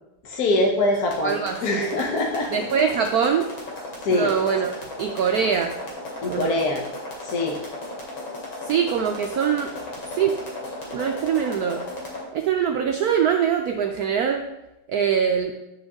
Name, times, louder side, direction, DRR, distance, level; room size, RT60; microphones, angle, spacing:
voice 1, 0.2-1.4 1.6-2.6 4.0-4.3 6.2-6.8 7.2-7.6, left 2 dB, 55° left, 0 dB, 1.2 m, -23 dB
sound 1, 0.9-12.2, left 2 dB, 75° left, 3.2 m, -35 dB
voice 2, 1.2-1.9 2.5-3.5 4.1-5.7 6.3-6.5 8.6-9.8 10.1-10.4 10.9-11.9 12.3-14.5 14.9-15.5, right 7 dB, 85° right, 4 dB, 0.8 m, -23 dB
10.5 x 5.2 x 3.6 m, 0.94 s
omnidirectional pair, 2.2 m